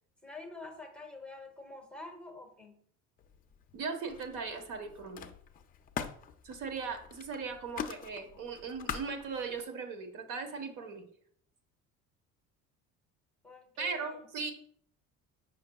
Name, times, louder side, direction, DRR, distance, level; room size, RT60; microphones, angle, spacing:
voice 1, 0.2-2.8 13.4-14.3, left 2 dB, 5° left, 1 dB, 0.9 m, -47 dB
Camera, 3.2-3.8 4.1-9.6, left 7 dB, 30° left, 0.4 m, -44 dB
voice 2, 3.7-5.3 6.4-11.0 13.8-14.5, right 5 dB, 80° right, 5 dB, 1.3 m, -38 dB
7.8 x 5.8 x 2.3 m, 0.62 s
cardioid pair, 170°, 30 cm